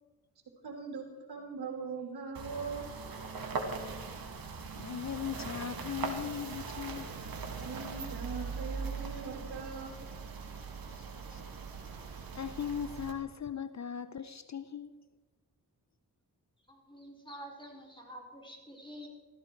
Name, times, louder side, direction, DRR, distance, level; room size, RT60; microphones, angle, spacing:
voice 1, 0.6-2.9 7.6-10.0, right 5 dB, 80° right, 3.0 m, -41 dB
sound 1, 2.3-13.1, right 4 dB, 65° right, 2.0 m, -40 dB
voice 2, 4.8-7.1 10.9-11.4 12.0-15.0, left 8 dB, 45° left, 0.7 m, -39 dB
voice 3, 16.7-19.1, equal, 10° left, 4.4 m, -48 dB
15.0 x 14.5 x 4.6 m
cardioid pair, 70°, 38 cm